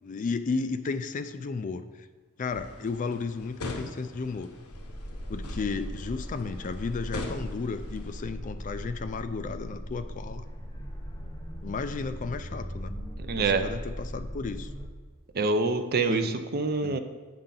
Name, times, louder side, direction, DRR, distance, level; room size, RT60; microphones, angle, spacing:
voice 1, 0.0-2.1 2.4-4.5 5.3-10.4 11.6-13.0 13.3-14.7 16.1-16.3 16.8-17.0, left 4 dB, 35° left, 10 dB, 0.3 m, -33 dB
sound 1, 2.5-8.2, left 2 dB, 90° left, 0.8 m, -42 dB
sound 2, 4.7-14.9, equal, 15° left, 0.7 m, -39 dB
voice 2, 13.2-13.7 15.3-17.0, right 3 dB, 45° right, 8 dB, 0.5 m, -26 dB
7.7 x 5.7 x 3.8 m, 1.3 s
head